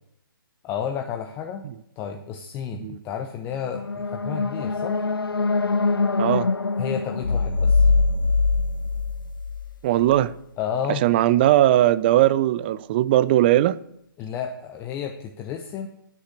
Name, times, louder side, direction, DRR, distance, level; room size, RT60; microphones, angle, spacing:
voice 1, 0.6-1.6 2.0-5.0 6.8-7.9 10.6-11.0 14.2-15.9, left 8 dB, 15° left, 0.7 m, -31 dB
sound 1, 3.5-8.6, left 3 dB, 90° left, 0.4 m, -26 dB
voice 2, 6.2-6.5 9.8-10.4 10.9-13.8, right 13 dB, 25° right, 0.4 m, -19 dB
sound 2, 7.2-9.9, left 4 dB, 60° left, 1.0 m, -21 dB
10.0 x 8.4 x 8.5 m
figure-of-eight pair, 135°, 12 cm